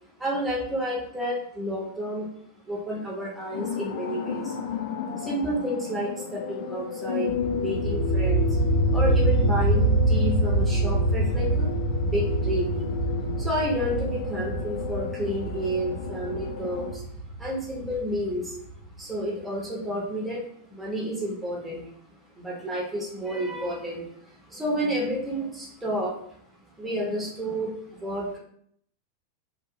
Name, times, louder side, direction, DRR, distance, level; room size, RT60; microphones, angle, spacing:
voice 1, 0.2-2.3 2.7-4.6 5.2-8.6 8.9-11.7 12.0-13.0 13.4-17.0 17.4-18.6 19.0-20.4 20.7-21.9 22.4-26.2 26.8-28.4, equal, 10° right, -4 dB, 0.8 m, -30 dB
sound 1, 3.5-16.9, left 7 dB, 55° left, 0.3 m, -34 dB
sound 2, 7.3-18.8, right 2 dB, 60° right, 0.5 m, -25 dB
2.7 x 2.3 x 2.7 m, 0.67 s
figure-of-eight pair, 90°, 0 cm